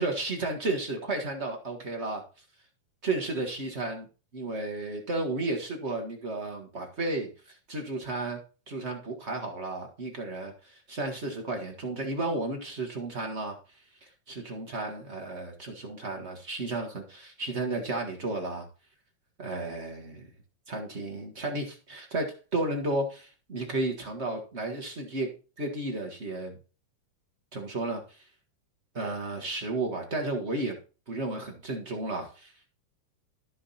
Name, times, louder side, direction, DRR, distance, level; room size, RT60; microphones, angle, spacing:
voice 1, 0.0-2.2 3.0-4.1 4.3-8.4 8.7-13.6 14.0-18.7 19.4-20.3 20.7-25.3 25.6-26.6 27.5-28.2 28.9-30.7 31.1-32.5, right 2 dB, 40° right, 2 dB, 0.9 m, -33 dB
13.5 x 4.9 x 4.2 m, 0.36 s
omnidirectional pair, 3.7 m